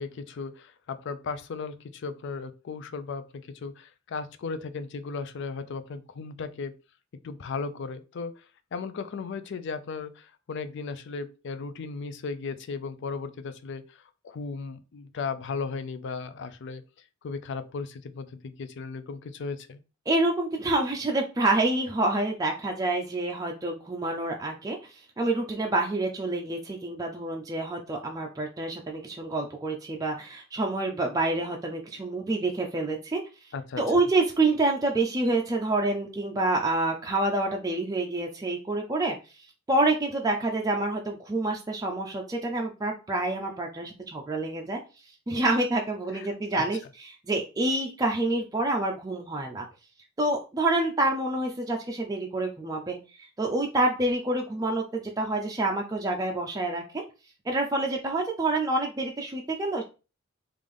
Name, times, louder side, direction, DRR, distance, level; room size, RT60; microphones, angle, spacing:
voice 1, 0.0-6.7 7.2-8.4 8.7-16.8 17.2-19.8 33.5-33.8 46.1-46.3 46.6-46.7, left 4 dB, 60° left, 0.4 m, -36 dB
voice 2, 20.1-33.2 33.8-39.2 39.7-44.8 45.3-49.6 50.2-53.0 53.4-57.0 57.5-59.8, right 2 dB, 15° right, 0.4 m, -27 dB
3.3 x 2.5 x 3.5 m
head